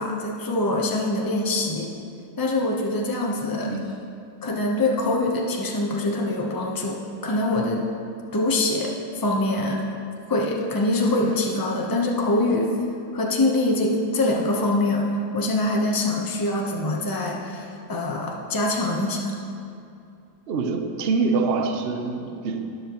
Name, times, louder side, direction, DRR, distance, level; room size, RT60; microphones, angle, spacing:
voice 1, 0.0-1.9 2.4-3.7 4.4-7.8 8.3-9.8 10.3-12.7 13.1-19.3, left 2 dB, 25° left, 0 dB, 0.4 m, -24 dB
voice 2, 20.5-22.8, right 4 dB, 75° right, 5 dB, 0.5 m, -25 dB
12.0 x 11.0 x 3.0 m, 2.5 s
omnidirectional pair, 2.0 m